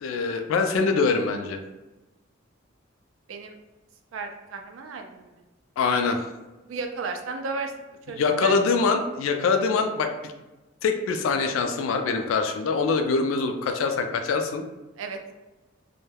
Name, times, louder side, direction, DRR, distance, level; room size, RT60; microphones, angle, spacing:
voice 1, 0.0-1.6 5.8-6.2 8.2-10.3 10.8-14.6, left 4 dB, 90° left, 6 dB, 0.3 m, -24 dB
voice 2, 4.1-5.3 6.6-7.7 8.1-8.6 15.0-15.2, right 4 dB, 80° right, 5 dB, 0.4 m, -34 dB
2.2 x 2.1 x 3.2 m, 1.1 s
head